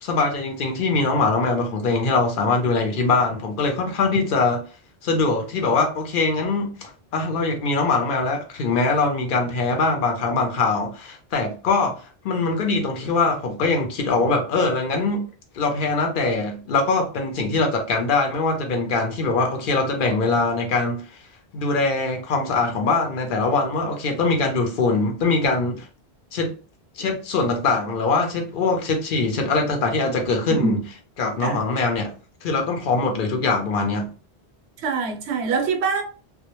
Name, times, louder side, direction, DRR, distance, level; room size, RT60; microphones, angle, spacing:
voice 1, 0.0-4.6 5.0-12.0 12.2-15.2 15.5-21.0 21.5-25.9 26.3-26.5 27.0-30.8 31.2-32.1 32.4-34.1, left 3 dB, 60° left, 0.7 m, -22 dB
voice 2, 30.5-30.8 31.4-31.7 34.8-36.0, right 4 dB, 85° right, 0.9 m, -24 dB
2.2 x 2.0 x 2.9 m
omnidirectional pair, 1.1 m